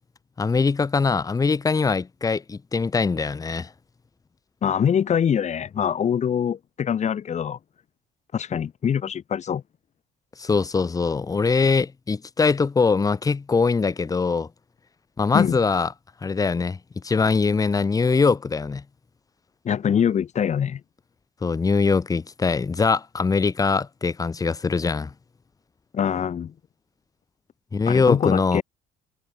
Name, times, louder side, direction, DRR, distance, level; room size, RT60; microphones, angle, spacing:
voice 1, 0.4-3.7 10.4-14.5 15.2-15.9 16.2-16.8 17.0-18.8 21.4-25.1 27.7-28.6, left 4 dB, 20° left, 1.0 m, -22 dB
voice 2, 4.6-7.6 8.3-9.6 15.3-15.6 19.6-20.8 25.9-26.5 27.9-28.6, left 8 dB, 45° left, 2.0 m, -24 dB
cardioid pair, 110°, 17 cm